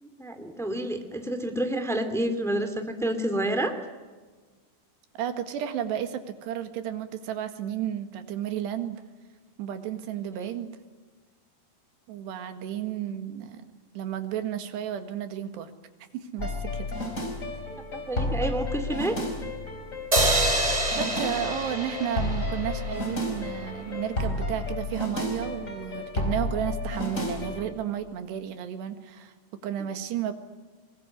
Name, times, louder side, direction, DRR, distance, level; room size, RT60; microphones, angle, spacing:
voice 1, 0.0-3.7 17.9-19.2, right 1 dB, ahead, 7 dB, 1.0 m, -29 dB
voice 2, 5.2-9.0 9.6-10.7 12.1-13.6 13.9-15.7 16.1-16.9 20.9-29.3 29.6-30.3, right 10 dB, 85° right, 8 dB, 3.9 m, -32 dB
sound 1, 16.4-27.7, left 2 dB, 20° left, 4.1 m, -32 dB
sound 2, 20.1-23.4, right 2 dB, 15° right, 1.6 m, -27 dB
23.5 x 21.0 x 9.7 m, 1.4 s
omnidirectional pair, 4.8 m